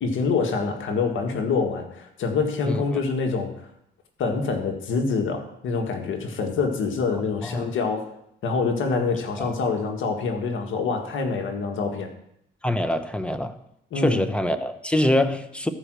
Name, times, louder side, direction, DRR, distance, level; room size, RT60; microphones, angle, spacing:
voice 1, 0.0-3.6 4.2-8.1 8.4-12.1 13.9-14.2, left 4 dB, 80° left, 4 dB, 1.7 m, -26 dB
voice 2, 12.6-13.6 13.9-15.7, left 1 dB, 5° left, 9 dB, 1.0 m, -24 dB
14.5 x 5.0 x 6.3 m, 0.77 s
cardioid pair, 90°, 20 cm